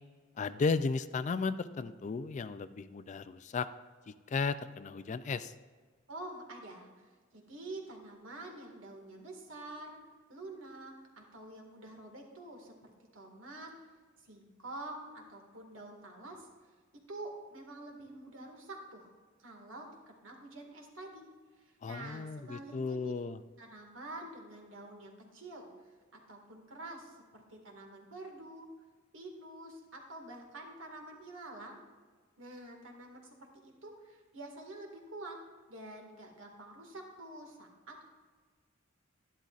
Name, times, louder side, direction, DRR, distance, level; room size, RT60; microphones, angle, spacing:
voice 1, 0.4-3.7 4.1-5.5 21.8-23.4, left 4 dB, 35° left, 13 dB, 0.3 m, -34 dB
voice 2, 6.1-10.0 10.3-13.7 14.2-16.5 17.1-19.1 19.4-21.3 21.6-23.1 23.6-25.7 26.1-28.7 29.1-31.8 32.4-33.3 33.6-35.4 35.7-38.0, right 2 dB, 70° right, 1 dB, 1.9 m, -47 dB
12.0 x 11.5 x 2.5 m, 1.5 s
head